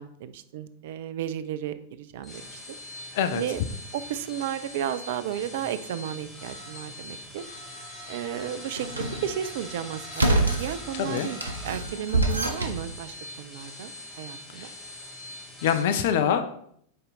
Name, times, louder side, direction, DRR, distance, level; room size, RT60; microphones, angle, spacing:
voice 1, 0.0-2.6 3.3-7.4 8.1-11.4 11.6-13.9 14.2-14.7, right 10 dB, 55° right, 13 dB, 0.4 m, -33 dB
sound 1, 2.1-15.8, left 1 dB, 15° left, 1.6 m, -42 dB
sound 2, 8.8-9.3 10.1-10.7 11.2-12.8, right 2 dB, 80° right, 0.8 m, -26 dB
voice 2, 11.0-11.3 14.5-14.7 15.6-16.4, left 8 dB, 55° left, 9 dB, 0.5 m, -24 dB
6.5 x 4.3 x 3.8 m, 0.67 s
figure-of-eight pair, 90°, 0 cm